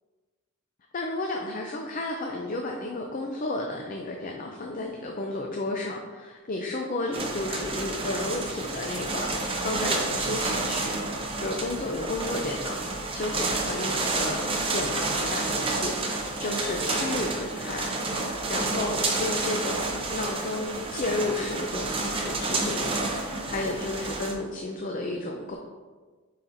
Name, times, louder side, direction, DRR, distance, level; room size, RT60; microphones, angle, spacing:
voice 1, 0.9-12.8 13.1-25.6, left 2 dB, 40° left, 1 dB, 0.5 m, -32 dB
sound 1, 7.1-24.3, right 3 dB, 25° right, 0.7 m, -30 dB
8.8 x 4.2 x 2.6 m, 1.4 s
head